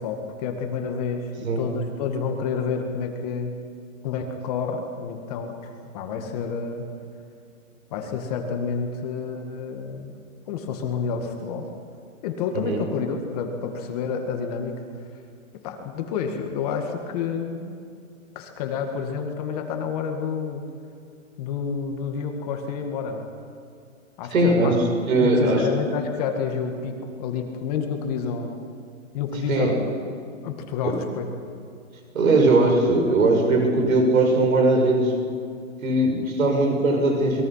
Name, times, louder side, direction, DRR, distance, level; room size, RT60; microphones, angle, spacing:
voice 1, 0.0-3.5 4.0-6.9 7.9-10.2 10.5-11.7 12.2-14.8 15.1-15.2 15.5-17.8 18.4-20.7 21.4-23.3 24.2-24.8 25.2-28.5 29.1-29.9 30.4-31.3, left 6 dB, 30° left, 4 dB, 1.9 m, -29 dB
voice 2, 24.3-24.8 25.1-25.7 29.5-29.7 30.8-30.9 32.1-35.1 35.8-37.4, right 2 dB, 80° right, 2 dB, 5.9 m, -19 dB
27.5 x 22.0 x 5.7 m, 2.3 s
hypercardioid pair, 165°, 41 cm